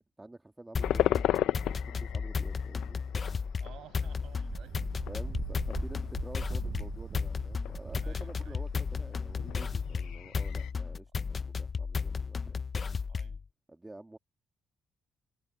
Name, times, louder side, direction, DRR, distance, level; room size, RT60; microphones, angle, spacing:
voice 1, 0.2-3.0 5.1-12.5 13.7-14.2, right 2 dB, 15° right, 2.0 m, -49 dB
sound 1, 0.7-13.4, left 5 dB, 40° left, 0.6 m, -34 dB
sound 2, 0.8-10.7, left 13 dB, 85° left, 0.6 m, -36 dB
voice 2, 3.6-4.8 8.0-8.6 13.1-13.4, right 12 dB, 80° right, 7.5 m, -53 dB
Wind, 4.2-10.1, right 5 dB, 45° right, 0.7 m, -41 dB
cardioid pair, 90°, 0 cm